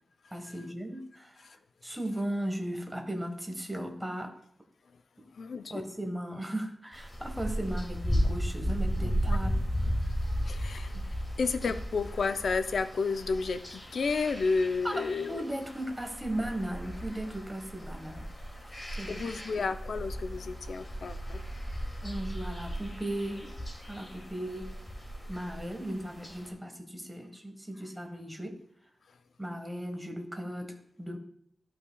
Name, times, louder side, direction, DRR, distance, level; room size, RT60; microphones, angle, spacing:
voice 1, 0.3-1.5 1.8-4.3 5.2-5.3 5.7-9.5 14.8-18.3 19.0-19.1 22.0-23.5 23.9-24.7 25.3-28.5 29.4-31.2, right 1 dB, 10° right, 4 dB, 1.3 m, -36 dB
voice 2, 5.3-5.8 10.0-15.4 18.9-21.4, left 4 dB, 75° left, 10 dB, 0.5 m, -32 dB
sound 1, 6.9-26.5, equal, 25° left, 2.3 m, -35 dB
12.0 x 5.7 x 2.3 m, 0.68 s
wide cardioid pair, 95°, 0 cm